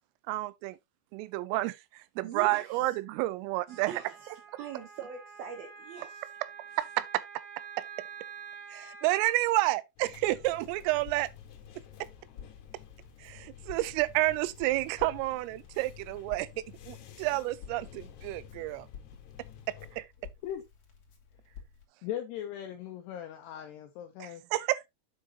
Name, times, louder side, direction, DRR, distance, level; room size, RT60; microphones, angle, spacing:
voice 1, 0.3-0.8 1.1-3.9 6.8-7.0 8.7-11.3 13.2-16.5 16.9-18.9 19.9-20.1 24.2-24.9, right 18 dB, 90° right, 3.3 m, -30 dB
voice 2, 2.2-3.0 3.7-4.3 4.6-6.3, right 7 dB, 70° right, 2.3 m, -42 dB
Wind instrument woodwind instrument, 3.7-9.4, right 7 dB, 50° right, 4.7 m, -47 dB
sound 1, 10.0-20.0, left 9 dB, 65° left, 3.2 m, -51 dB
Crackle, 10.9-21.8, left 7 dB, 40° left, 3.0 m, -53 dB
voice 3, 22.0-24.4, left 10 dB, 80° left, 2.4 m, -39 dB
8.8 x 7.6 x 2.9 m
omnidirectional pair, 5.7 m